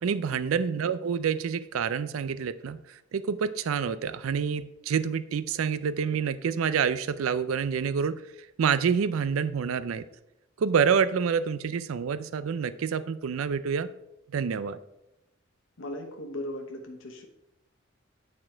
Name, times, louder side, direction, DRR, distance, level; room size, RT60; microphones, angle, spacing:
voice 1, 0.0-8.2 8.6-10.0 10.6-13.9 14.3-14.8, right 6 dB, 85° right, 14 dB, 0.4 m, -27 dB
voice 2, 15.8-17.3, left 1 dB, 70° left, 3 dB, 1.0 m, -38 dB
8.6 x 4.3 x 4.4 m, 0.88 s
head